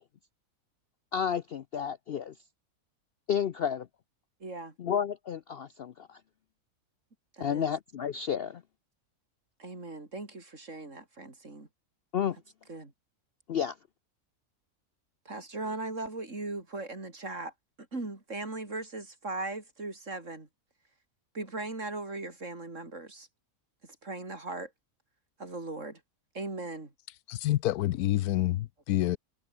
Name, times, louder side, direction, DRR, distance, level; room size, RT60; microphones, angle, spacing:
voice 1, 1.1-2.3 3.3-3.9 4.8-6.2 7.4-8.6 12.1-12.4 13.5-13.8, left 8 dB, 55° left, 0.7 m, -31 dB
voice 2, 4.4-4.7 7.3-7.7 9.6-11.7 12.7-12.9 15.2-17.5 17.9-20.5 21.3-23.3 23.8-24.7 25.4-26.0 26.3-26.9, right 2 dB, 55° right, 4.4 m, -38 dB
voice 3, 27.3-29.2, left 15 dB, 85° left, 1.1 m, -27 dB
omnidirectional pair, 1.5 m